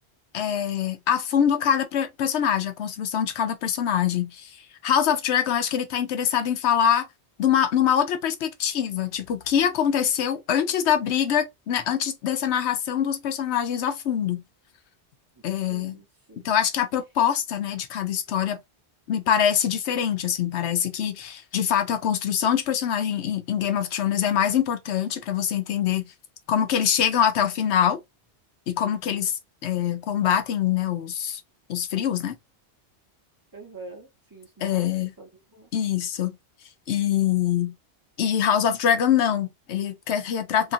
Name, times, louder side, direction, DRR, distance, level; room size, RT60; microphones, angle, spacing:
voice 1, 0.3-4.5 4.8-7.1 7.4-14.4 15.4-16.0 16.4-18.6 19.1-26.0 26.5-28.0 28.7-29.4 29.6-31.4 31.7-32.4 34.6-35.1 35.7-36.3 36.9-37.7 38.2-40.7, left 9 dB, 75° left, 0.9 m, -24 dB
voice 2, 15.7-16.6 33.5-35.7, right 3 dB, 20° right, 0.9 m, -45 dB
2.8 x 2.5 x 2.5 m
omnidirectional pair, 1.2 m